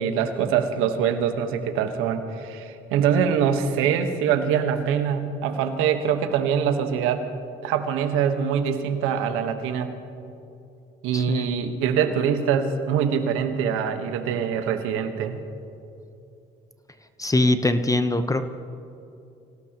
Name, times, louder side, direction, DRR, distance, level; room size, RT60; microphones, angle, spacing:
voice 1, 0.0-7.2 7.6-9.9 11.0-15.4, right 7 dB, 85° right, 7 dB, 1.3 m, -24 dB
voice 2, 11.1-11.5 17.2-18.4, left 2 dB, 15° left, 9 dB, 0.9 m, -22 dB
26.0 x 17.5 x 3.0 m, 2.7 s
supercardioid pair, 70°, 21 cm